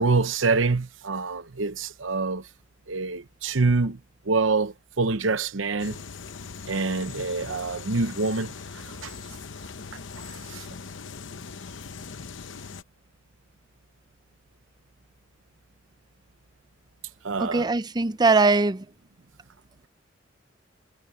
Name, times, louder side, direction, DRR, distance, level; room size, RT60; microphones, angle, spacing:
voice 1, 0.0-2.5 2.9-4.0 4.2-6.0 6.7-9.1 10.2-10.7 17.2-17.7, right 3 dB, 90° right, 0.9 m, -26 dB
sound 1, 5.8-12.8, left 5 dB, 75° left, 0.9 m, -40 dB
voice 2, 17.4-18.9, right 3 dB, 20° right, 0.5 m, -21 dB
head